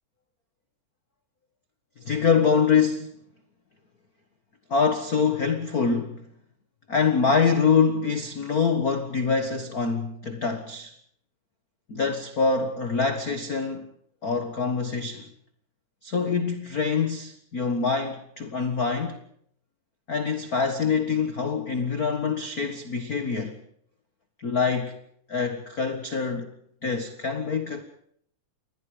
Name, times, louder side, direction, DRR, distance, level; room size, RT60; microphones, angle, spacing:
voice 1, 2.0-3.2 4.7-6.3 6.9-10.9 11.9-13.9 14.2-15.3 16.0-19.2 20.1-23.6 24.4-25.0 25.3-26.5 26.8-27.8, left 5 dB, 40° left, 1.3 m, -25 dB
28.5 x 21.0 x 5.1 m
omnidirectional pair, 3.9 m